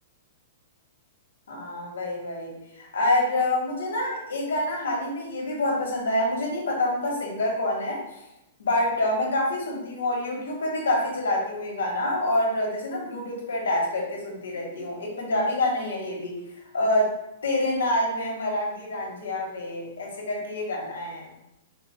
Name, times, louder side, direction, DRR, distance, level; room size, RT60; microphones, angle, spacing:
voice 1, 1.5-8.2 8.6-16.4 16.7-17.1 17.4-21.2, left 1 dB, 90° left, -1 dB, 1.4 m, -27 dB
5.1 x 2.1 x 4.4 m, 0.86 s
hypercardioid pair, 145°, 0 cm